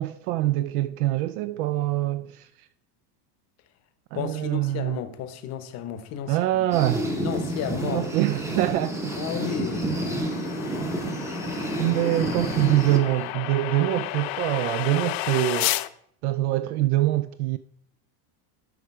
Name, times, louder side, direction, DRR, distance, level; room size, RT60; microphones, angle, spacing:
voice 1, 0.0-2.7 4.1-5.0 6.3-7.1 7.8-8.9 11.8-15.8 16.2-17.6, right 15 dB, 65° right, 0.5 m, -24 dB
voice 2, 4.1-6.7 7.0-8.1 9.2-9.8, left 8 dB, 35° left, 0.9 m, -33 dB
sound 1, 6.7-13.3, right 1 dB, 5° right, 0.8 m, -30 dB
sound 2, 7.2-15.9, left 17 dB, 55° left, 0.5 m, -33 dB
12.5 x 5.0 x 4.7 m
cardioid pair, 170°, 49 cm